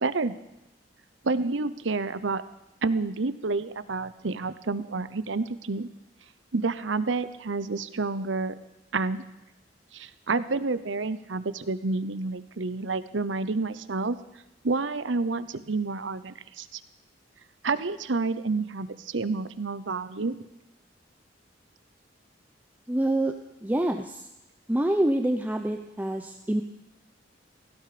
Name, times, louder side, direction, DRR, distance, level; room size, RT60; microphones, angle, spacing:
voice 1, 0.0-0.3 1.2-2.4 2.8-5.9 6.5-8.5 8.9-9.2 9.9-14.2 14.6-16.8 17.6-20.4, right 3 dB, 85° right, 14 dB, 0.9 m, -29 dB
voice 2, 22.9-23.3 23.6-24.3 24.7-26.6, right 1 dB, 10° right, 5 dB, 0.7 m, -26 dB
17.0 x 16.5 x 5.1 m, 0.94 s
head